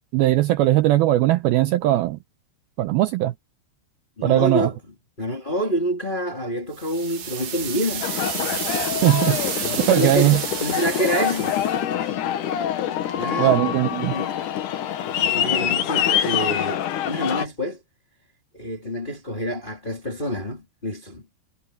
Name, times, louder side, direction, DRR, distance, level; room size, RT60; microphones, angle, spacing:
voice 1, 0.1-2.2 2.8-3.3 4.2-4.7 9.0-10.4 13.4-14.1, right 15 dB, 85° right, 2.3 m, -19 dB
voice 2, 4.2-4.8 5.2-8.1 9.6-11.6 12.0-12.1 13.1-13.6 14.1-14.8 15.2-17.8 18.5-21.3, equal, 15° left, 1.7 m, -27 dB
sound 1, 6.7-11.8, right 8 dB, 60° right, 4.6 m, -30 dB
Aircraft, 8.0-17.4, left 10 dB, 65° left, 2.2 m, -25 dB
omnidirectional pair, 5.1 m